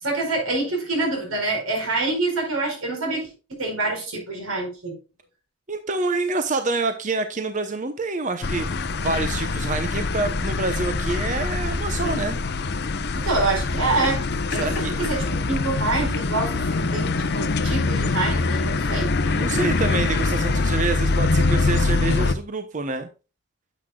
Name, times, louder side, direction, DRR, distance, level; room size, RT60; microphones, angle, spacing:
voice 1, 0.0-4.9 13.1-14.2 14.5-14.7 15.0-19.1, right 2 dB, 90° right, 4.4 m, -26 dB
voice 2, 5.7-12.4 14.6-15.0 15.3-15.4 19.2-23.1, right 3 dB, 35° right, 0.7 m, -27 dB
sound 1, 8.4-22.4, left 3 dB, 50° left, 0.7 m, -24 dB
9.6 x 8.1 x 2.3 m
head